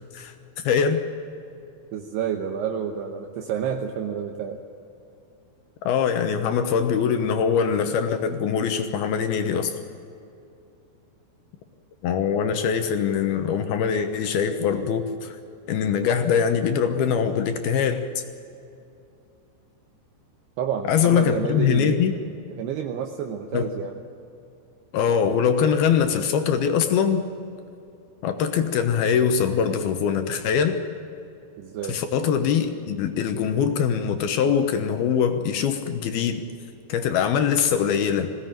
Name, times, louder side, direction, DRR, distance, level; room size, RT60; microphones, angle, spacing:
voice 1, 0.1-1.0 5.8-9.8 12.0-15.4 15.7-18.0 20.9-22.1 23.5-23.7 24.9-27.3 28.2-30.8 31.9-36.4 36.9-38.3, left 7 dB, 70° left, 7 dB, 2.6 m, -23 dB
voice 2, 1.9-4.6 20.6-22.3 22.6-23.9 31.6-32.0, right 8 dB, 75° right, 2 dB, 2.9 m, -29 dB
21.0 x 17.0 x 9.1 m, 2.7 s
omnidirectional pair, 5.2 m